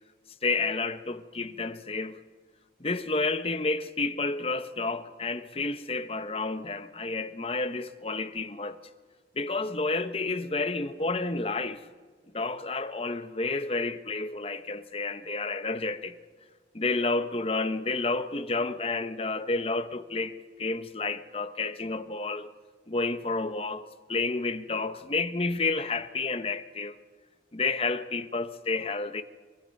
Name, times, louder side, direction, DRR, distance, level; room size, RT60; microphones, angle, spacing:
voice 1, 0.4-2.2 2.8-8.8 9.4-11.9 12.3-16.2 16.7-22.5 22.9-26.9 27.5-29.2, left 3 dB, 30° left, 0.9 m, -30 dB
23.5 x 23.0 x 5.4 m
head